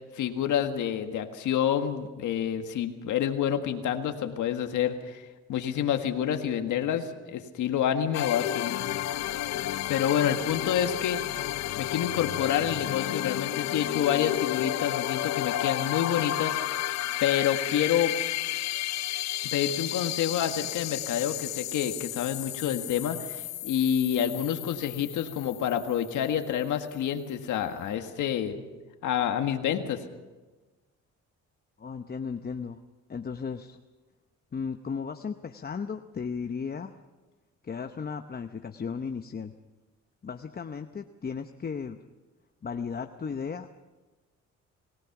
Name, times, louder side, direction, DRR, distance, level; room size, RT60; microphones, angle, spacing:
voice 1, 0.1-5.2 5.5-8.7 9.9-11.2 11.8-16.8 17.2-18.2 19.5-28.6 29.0-30.0, left 9 dB, 80° left, 6 dB, 1.7 m, -28 dB
sound 1, 8.1-26.6, left 13 dB, 60° left, 0.6 m, -32 dB
voice 2, 31.8-32.8 33.1-33.8 34.5-36.9 37.6-39.5 40.2-42.0 42.6-43.8, left 6 dB, 30° left, 7 dB, 0.9 m, -35 dB
26.0 x 17.5 x 6.0 m, 1.2 s
cardioid pair, 90°, 30 cm